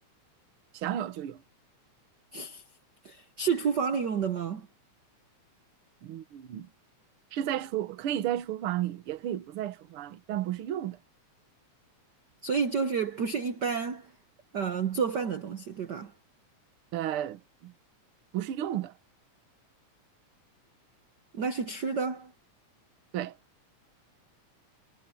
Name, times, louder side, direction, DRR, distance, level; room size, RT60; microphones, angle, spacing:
voice 1, 0.7-1.4 6.0-6.7 7.3-11.0 16.9-17.7 18.3-18.9 23.1-23.4, right 11 dB, 60° right, 1.7 m, -33 dB
voice 2, 2.3-2.6 3.0-4.7 12.4-14.1 14.5-16.1 21.3-22.3, right 6 dB, 85° right, 0.9 m, -30 dB
omnidirectional pair, 3.4 m